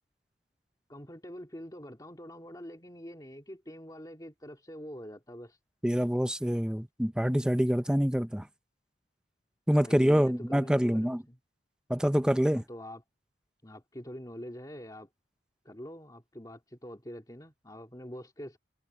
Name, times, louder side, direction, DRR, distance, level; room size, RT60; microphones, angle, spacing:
voice 1, 0.9-5.6 9.8-11.4 12.5-13.0 13.6-15.1 15.6-18.6, equal, 20° left, 2.9 m, -45 dB
voice 2, 5.8-8.5 9.7-11.2 11.9-12.6, equal, 5° right, 0.7 m, -26 dB
head